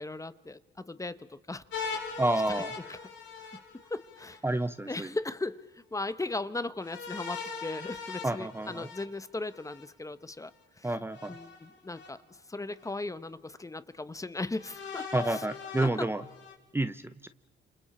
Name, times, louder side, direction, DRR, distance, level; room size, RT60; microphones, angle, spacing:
voice 1, 0.0-1.6 2.5-3.1 3.4-3.6 3.9-4.6 4.9-10.5 10.8-10.9 11.3-15.5 15.8-16.1, left 2 dB, 15° left, 14 dB, 1.0 m, -38 dB
sound 1, 1.7-4.4 6.8-9.8 11.1-12.1 12.8-12.9 14.6-16.5, left 5 dB, 70° left, 4.9 m, -41 dB
voice 2, 2.2-2.7 4.4-5.1 8.2-8.9 10.8-11.3 15.1-16.2 16.7-17.3, right 2 dB, 10° right, 12 dB, 0.7 m, -29 dB
29.5 x 28.0 x 4.3 m, 0.95 s
cardioid pair, 90°, 20 cm